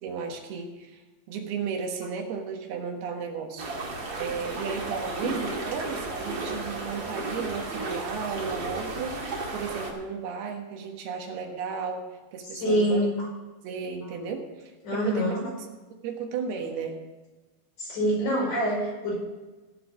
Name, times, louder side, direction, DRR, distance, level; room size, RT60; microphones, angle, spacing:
voice 1, 0.0-1.0 1.3-3.7 4.2-9.2 9.5-13.1 13.6-15.7 16.0-17.0, right 5 dB, 80° right, 3 dB, 3.4 m, -34 dB
sound 1, 3.6-9.9, right 2 dB, 35° right, 2.4 m, -33 dB
voice 2, 12.4-13.3 14.8-15.4 17.8-19.1, equal, 55° left, -4 dB, 6.8 m, -25 dB
16.5 x 7.8 x 6.4 m, 1.2 s
omnidirectional pair, 4.5 m